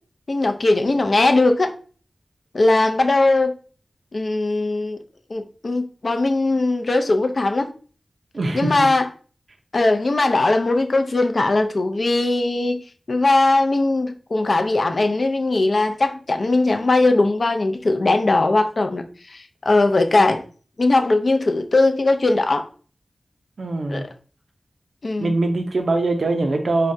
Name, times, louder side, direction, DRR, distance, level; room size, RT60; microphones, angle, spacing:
voice 1, 0.3-1.7 2.5-3.5 4.1-5.0 5.3-7.7 8.5-9.1 9.7-20.4 20.8-22.7 23.9-24.1 25.0-25.3, left 2 dB, 65° left, 0.4 m, -19 dB
voice 2, 8.3-8.9 23.6-24.1 25.2-26.9, right 2 dB, 75° right, 0.4 m, -22 dB
4.7 x 2.1 x 2.6 m
wide cardioid pair, 50°, 0 cm